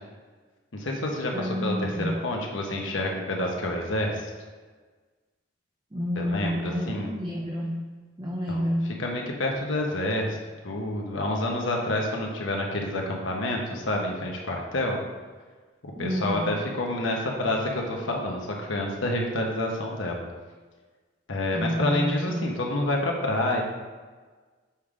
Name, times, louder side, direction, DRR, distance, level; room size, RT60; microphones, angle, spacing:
voice 1, 0.7-4.3 6.2-7.1 8.5-8.6 9.0-10.4 10.6-15.0 15.8-20.2 21.3-23.6, left 1 dB, 80° left, 0 dB, 1.0 m, -28 dB
voice 2, 1.3-2.2 5.9-7.9 8.2-9.0 15.9-16.5 21.5-22.5, equal, 25° right, -2 dB, 0.6 m, -29 dB
7.1 x 3.6 x 4.9 m, 1.4 s
head